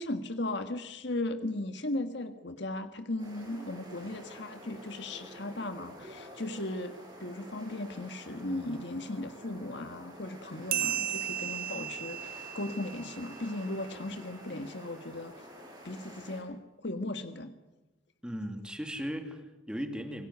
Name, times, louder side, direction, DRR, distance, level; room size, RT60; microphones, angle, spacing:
voice 1, 0.0-6.9 7.2-15.3 15.8-17.5, left 2 dB, 60° left, 8 dB, 1.6 m, -37 dB
sound 1, 3.2-16.4, equal, 20° right, 7.7 m, -49 dB
sound 2, 10.7-13.8, right 10 dB, 50° right, 1.6 m, -35 dB
voice 2, 18.2-20.3, equal, 5° right, 5 dB, 2.5 m, -37 dB
27.5 x 18.5 x 9.4 m, 1.1 s
head